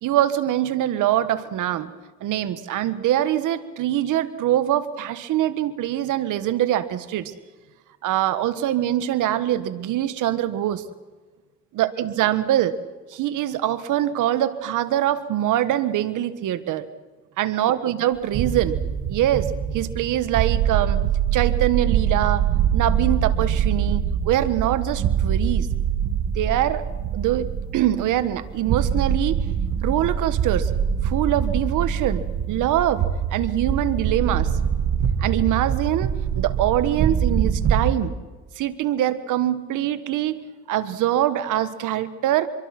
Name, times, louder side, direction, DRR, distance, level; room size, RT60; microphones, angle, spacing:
voice 1, 0.0-1.9 2.2-7.3 8.0-10.8 11.7-12.7 13.1-16.9 17.4-18.8 19.1-19.5 19.7-21.0 21.3-22.4 22.7-25.7 26.2-26.8 27.1-29.3 29.8-30.7 31.0-33.0 33.3-34.5 35.2-36.1 36.3-38.1 38.6-40.4 40.7-42.5, right 12 dB, 85° right, 12 dB, 1.5 m, -23 dB
sound 1, 18.2-38.0, right 8 dB, 70° right, 1.8 m, -24 dB
26.0 x 23.0 x 6.0 m, 1.3 s
cardioid pair, 90°, 30 cm